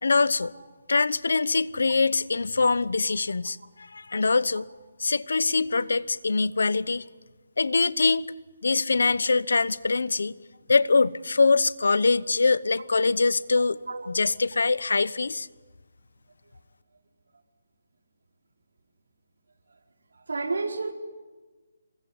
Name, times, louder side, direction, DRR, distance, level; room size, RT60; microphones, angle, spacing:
voice 1, 0.0-0.5 0.9-4.7 5.0-7.0 7.6-8.3 8.6-10.3 10.7-13.8 14.1-15.5, left 4 dB, 85° left, 1.0 m, -23 dB
voice 2, 20.3-20.9, right 3 dB, 90° right, 4.3 m, -29 dB
26.0 x 22.5 x 9.6 m
hypercardioid pair, 175°, 0 cm